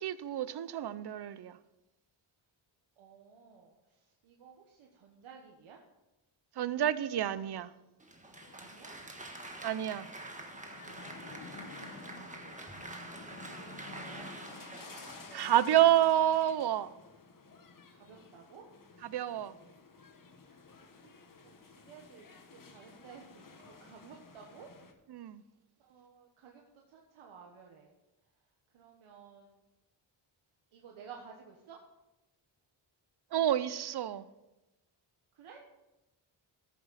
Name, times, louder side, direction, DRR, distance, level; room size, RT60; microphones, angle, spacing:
voice 1, 0.0-1.5 6.6-7.7 9.6-10.1 15.3-16.9 19.0-19.5 25.1-25.4 33.3-34.2, right 11 dB, 55° right, 0.6 m, -29 dB
voice 2, 3.0-5.8 8.6-9.0 10.2-13.1 13.4-14.3 17.9-18.7 20.5-20.6 21.0-21.1 21.4-24.7 25.8-27.9 28.7-29.6 30.7-31.8 35.3-35.6, right 6 dB, 90° right, 1.3 m, -55 dB
Applause, 8.0-16.1, right 2 dB, 15° right, 1.3 m, -47 dB
sound 1, 8.3-24.9, left 3 dB, 45° left, 1.3 m, -53 dB
13.5 x 7.3 x 4.1 m
cardioid pair, 90°, 48 cm